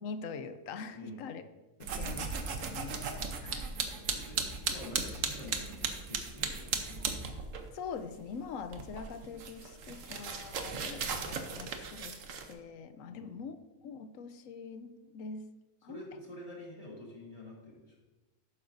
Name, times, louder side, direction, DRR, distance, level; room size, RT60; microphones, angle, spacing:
voice 1, 0.0-1.4 1.8-3.7 7.7-12.2 12.5-13.6 13.8-15.5 15.8-16.0, left 5 dB, 85° left, 11 dB, 1.0 m, -43 dB
voice 2, 0.9-1.2 4.1-7.1 13.1-13.4 15.9-18.0, left 1 dB, 25° left, -4 dB, 2.5 m, -48 dB
sound 1, 1.8-7.7 8.0-12.5, right 5 dB, 75° right, 1.3 m, -37 dB
11.5 x 8.8 x 2.6 m, 1.2 s
omnidirectional pair, 1.4 m